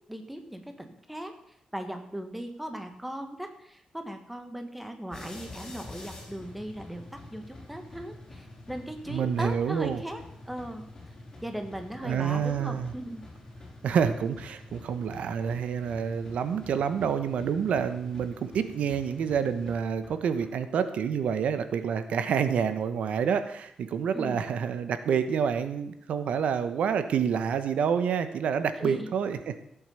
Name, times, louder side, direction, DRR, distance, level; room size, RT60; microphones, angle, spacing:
voice 1, 0.1-1.3 1.7-10.2 10.5-10.8 11.4-13.2 24.1-24.4 28.8-29.1, right 1 dB, 5° right, 6 dB, 1.5 m, -38 dB
sound 1, 5.1-20.5, left 2 dB, 25° left, 4.8 m, -47 dB
voice 2, 9.1-10.0 12.0-12.9 13.8-29.6, right 7 dB, 80° right, 10 dB, 1.1 m, -28 dB
15.0 x 8.7 x 7.0 m, 0.73 s
wide cardioid pair, 180°, 2 cm